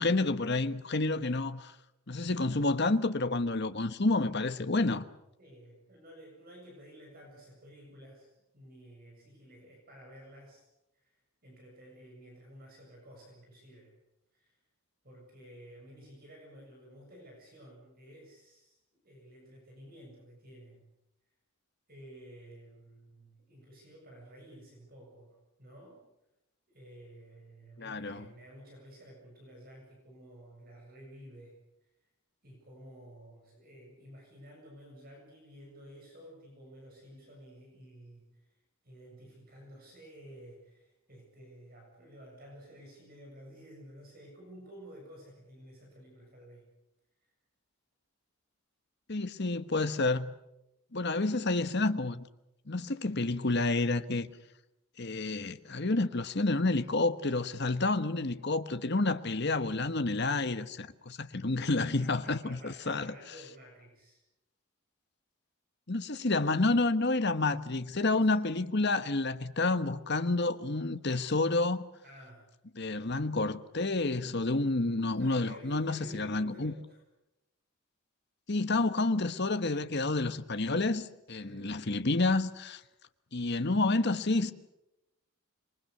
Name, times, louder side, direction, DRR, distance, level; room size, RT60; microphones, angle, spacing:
voice 1, 0.0-1.7 2.1-5.0 27.8-28.2 49.1-50.3 50.9-52.3 52.7-54.3 55.0-63.1 65.9-71.8 72.8-76.7 78.5-82.8 83.3-84.5, left 2 dB, 50° left, 1.2 m, -29 dB
voice 2, 5.4-10.6 10.9-11.1 11.4-13.9 14.3-14.6 15.0-18.8 19.0-20.9 21.9-26.0 26.7-31.6 32.4-38.6 38.8-46.7 62.2-64.2 68.2-68.3 72.0-72.5 75.2-77.0 81.4-81.8, equal, 40° right, 7.4 m, -52 dB
27.0 x 23.0 x 6.8 m
head